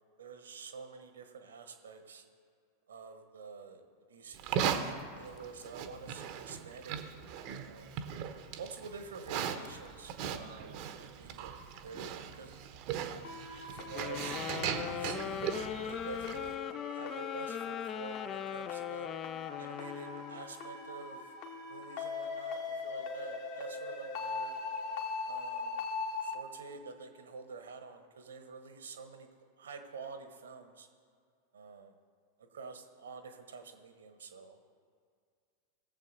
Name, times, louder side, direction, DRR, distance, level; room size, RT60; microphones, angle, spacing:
voice 1, 0.2-2.2 2.9-3.8 4.1-4.8 5.1-7.0 7.3-7.9 8.6-12.6 13.7-15.5 15.8-19.1 19.6-21.3 21.7-24.5 25.3-25.8 26.2-29.3 29.6-30.9 31.5-31.9 32.4-34.7, right 4 dB, 65° right, 7 dB, 1.2 m, -48 dB
Livestock farm animals working animals, 4.3-16.5, right 8 dB, 45° right, 0.8 m, -39 dB
sound 1, 13.2-26.3, left 4 dB, 50° left, 1.4 m, -41 dB
sound 2, 13.9-20.5, left 9 dB, 30° left, 0.4 m, -40 dB
18.5 x 7.3 x 4.1 m, 2.2 s
figure-of-eight pair, 90°, 0 cm